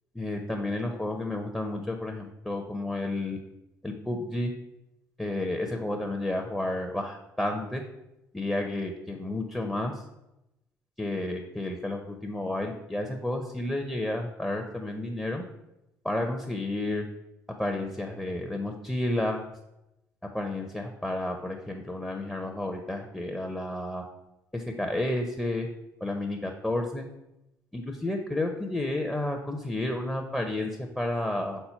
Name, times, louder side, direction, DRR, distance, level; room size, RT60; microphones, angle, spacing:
voice 1, 0.1-3.4 3.8-4.5 5.2-7.8 8.3-9.9 11.0-15.4 16.0-17.0 17.6-19.4 20.3-24.0 24.5-25.7 26.0-27.1 27.7-30.7 31.0-31.6, left 1 dB, 10° left, 2 dB, 0.8 m, -31 dB
5.6 x 4.1 x 4.4 m, 0.90 s
figure-of-eight pair, 50°, 9 cm